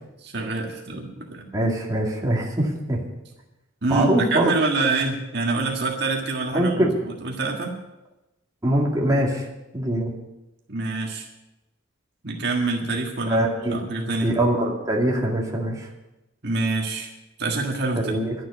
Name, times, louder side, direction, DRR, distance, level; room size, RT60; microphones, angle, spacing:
voice 1, 0.2-1.5 3.8-6.9 7.2-7.7 10.7-11.3 12.2-14.3 16.4-17.1 17.4-18.0, right 3 dB, 55° right, 0 dB, 1.7 m, -26 dB
voice 2, 1.5-3.0 3.9-4.5 6.5-6.9 8.6-9.5 9.7-10.1 13.3-13.8 14.2-15.9 18.0-18.3, right 1 dB, 20° right, -3 dB, 2.3 m, -23 dB
12.0 x 7.7 x 9.6 m, 0.98 s
head